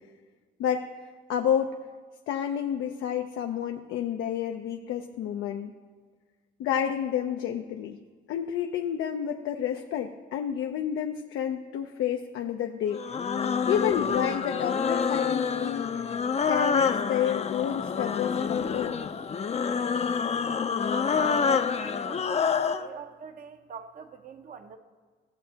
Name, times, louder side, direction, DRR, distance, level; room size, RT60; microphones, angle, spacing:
voice 1, 1.3-1.8 2.3-5.7 6.6-8.0 8.3-13.0 13.7-16.1 16.5-19.0, left 9 dB, 85° left, 4 dB, 0.6 m, -30 dB
sound 1, 12.9-22.9, left 6 dB, 35° left, 0.5 m, -27 dB
voice 2, 20.9-24.8, right 6 dB, 45° right, 8 dB, 0.7 m, -44 dB
15.5 x 6.7 x 2.8 m, 1.5 s
cardioid pair, 90°, 20 cm